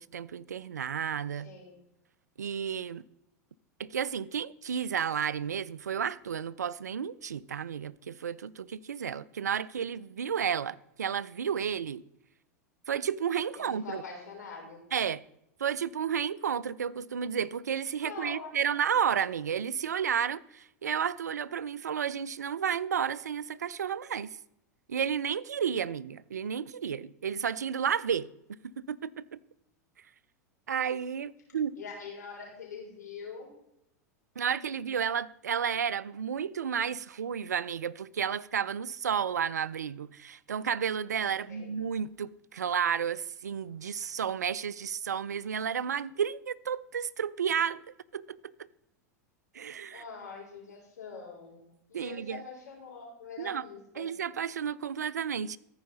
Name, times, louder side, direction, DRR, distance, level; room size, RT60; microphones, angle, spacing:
voice 1, 0.0-1.5 2.4-3.0 3.8-12.0 12.9-14.0 14.9-15.2 15.6-24.4 24.9-28.3 28.9-29.4 30.7-31.8 34.4-47.8 48.1-48.4 49.5-50.0 51.9-52.4 53.4-53.6 54.0-55.6, right 7 dB, 85° right, 0.3 m, -32 dB
voice 2, 13.5-14.8 18.0-18.8 31.8-33.5 41.5-41.8 49.9-51.6 51.9-54.1, left 5 dB, 85° left, 4.0 m, -44 dB
14.0 x 4.8 x 5.5 m
hypercardioid pair, 95°, 9 cm